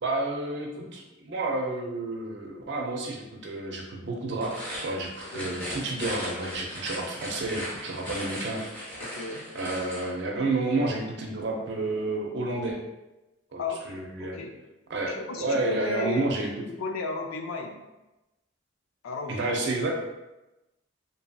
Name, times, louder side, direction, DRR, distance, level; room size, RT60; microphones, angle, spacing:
voice 1, 0.0-8.6 9.5-12.8 13.5-14.4 14.9-16.5 19.3-19.9, right 2 dB, 55° right, 0 dB, 0.5 m, -30 dB
sound 1, 4.3-10.1, equal, 10° left, 0.8 m, -37 dB
voice 2, 9.0-9.5 13.6-14.6 15.1-16.3 16.8-17.8 19.0-19.5, left 3 dB, 85° left, 3 dB, 0.4 m, -34 dB
2.7 x 2.7 x 2.3 m, 1.0 s
head